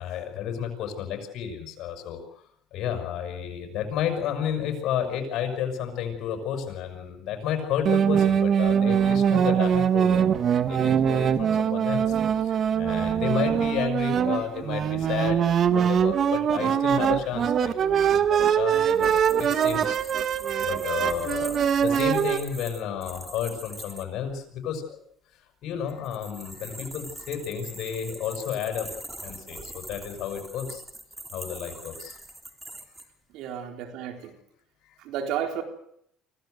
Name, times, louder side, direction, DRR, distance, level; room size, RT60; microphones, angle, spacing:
voice 1, 0.0-2.4 2.7-15.4 15.7-20.0 20.3-25.0 25.6-28.9 29.2-30.8 31.3-32.2 34.8-35.0, left 8 dB, 60° left, 5 dB, 6.4 m, -32 dB
sound 1, 7.9-22.4, right 8 dB, 50° right, 1.4 m, -23 dB
sound 2, 18.7-24.1 25.9-33.1, right 1 dB, 10° right, 3.4 m, -43 dB
voice 2, 33.3-34.3 35.0-35.6, right 9 dB, 75° right, 5 dB, 4.0 m, -32 dB
25.0 x 16.0 x 8.0 m, 0.72 s
supercardioid pair, 95°, 0 cm